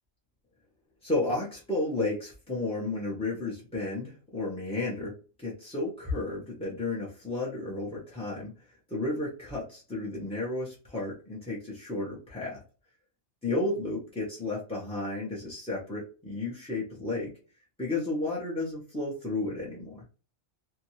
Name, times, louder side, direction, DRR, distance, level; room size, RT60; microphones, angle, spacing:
voice 1, 1.0-8.5 8.9-12.6 13.4-17.3 17.8-20.0, left 2 dB, 5° left, -5 dB, 0.5 m, -32 dB
2.7 x 2.2 x 3.0 m, 0.36 s
omnidirectional pair, 1.4 m